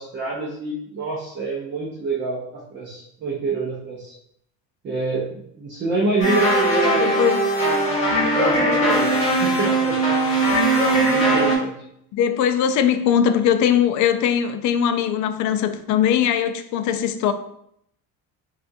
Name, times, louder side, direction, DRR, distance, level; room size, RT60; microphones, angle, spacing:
voice 1, 0.0-4.1 4.8-7.1 8.1-9.1 9.4-10.0 11.1-11.8, right 3 dB, 30° right, -5 dB, 0.7 m, -26 dB
sound 1, 6.2-11.5, right 1 dB, 20° left, 1.3 m, -19 dB
voice 2, 7.0-7.4 12.1-17.3, left 9 dB, 55° left, 9 dB, 0.4 m, -20 dB
5.7 x 2.4 x 2.7 m, 0.72 s
cardioid pair, 160°, 35 cm